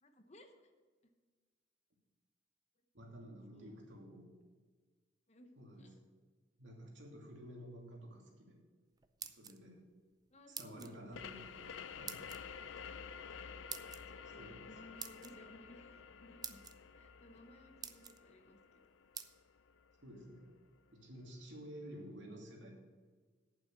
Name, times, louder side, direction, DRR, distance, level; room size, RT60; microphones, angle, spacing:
voice 1, 0.0-0.7 1.0-1.1 3.5-3.8 5.3-5.5 5.8-5.9 10.3-11.4 14.1-16.6 16.9-18.8, left 1 dB, 35° left, 6 dB, 1.0 m, -59 dB
voice 2, 2.9-4.4 5.6-5.9 6.6-8.6 9.2-9.8 10.5-12.3 14.3-14.7 20.0-20.5 20.9-22.7, equal, 70° right, -1 dB, 2.7 m, -52 dB
sound 1, 9.0-9.8 10.5-10.9 12.1-12.4 13.7-14.0 15.0-15.3 16.0-16.1 16.4-16.7 17.4-17.5 17.8-18.2 19.1-19.3, right 7 dB, 20° right, 0.5 m, -46 dB
sound 2, 11.1-20.5, left 6 dB, 80° left, 0.5 m, -51 dB
8.7 x 7.4 x 8.2 m, 1.4 s
head